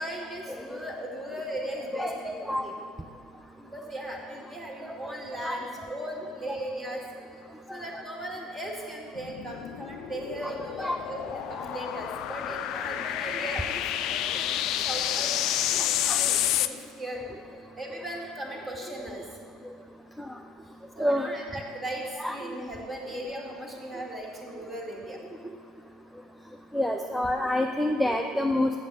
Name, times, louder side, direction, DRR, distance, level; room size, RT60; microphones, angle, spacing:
voice 1, 0.0-2.7 3.6-7.0 7.7-17.2 17.8-19.3 20.9-25.2, right 1 dB, 20° right, -1 dB, 2.1 m, -38 dB
voice 2, 2.0-2.7 5.4-5.6 6.5-6.6 10.4-10.5 10.8-11.0 16.0-16.2 20.2-20.3 21.0-21.3 22.2-22.5 26.7-28.7, left 1 dB, ahead, 3 dB, 0.6 m, -27 dB
sound 1, 9.2-16.7, left 12 dB, 55° left, 0.3 m, -29 dB
7.9 x 7.2 x 6.2 m, 2.3 s
figure-of-eight pair, 65°, 0 cm